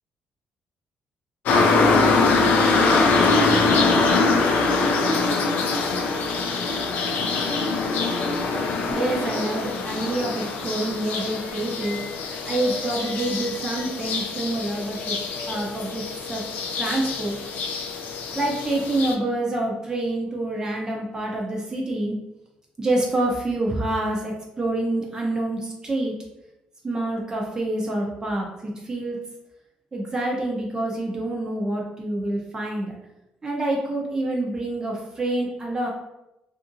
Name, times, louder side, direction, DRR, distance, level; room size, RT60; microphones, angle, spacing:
sound 1, 1.5-19.1, left 3 dB, 70° left, 0.4 m, -23 dB
voice 1, 8.9-15.2 15.5-16.4 16.8-17.4 18.3-22.2 22.8-26.1 26.8-29.2 29.9-32.9 33.4-35.9, right 1 dB, 20° right, -1 dB, 0.5 m, -27 dB
2.7 x 2.4 x 2.6 m, 0.91 s
cardioid pair, 135°, 3 cm